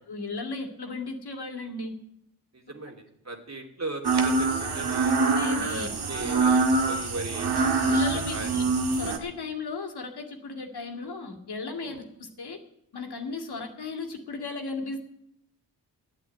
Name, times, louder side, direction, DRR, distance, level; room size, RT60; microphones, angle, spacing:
voice 1, 0.1-1.9 5.3-5.9 7.8-8.6 9.0-12.6 12.9-15.1, left 3 dB, 65° left, 4 dB, 2.3 m, -35 dB
voice 2, 2.5-3.0 3.2-5.2 5.6-8.0 8.3-8.5 11.8-12.0, right 2 dB, 40° right, 3 dB, 2.8 m, -38 dB
sound 1, 4.0-9.2, right 3 dB, 65° right, 1.8 m, -24 dB
11.0 x 8.5 x 9.2 m, 0.77 s
cardioid pair, 55°, 42 cm